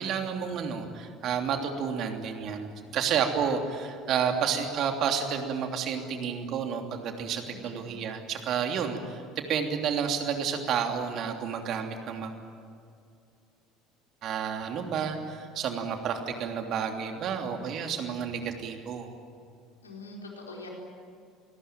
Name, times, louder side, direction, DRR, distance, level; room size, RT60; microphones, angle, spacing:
voice 1, 0.0-12.3 14.2-19.1, right 7 dB, 50° right, 4 dB, 3.1 m, -30 dB
voice 2, 7.5-7.8 19.8-20.7, left 2 dB, 85° left, -1 dB, 4.6 m, -43 dB
28.0 x 19.5 x 9.2 m, 2.4 s
figure-of-eight pair, 65°, 0 cm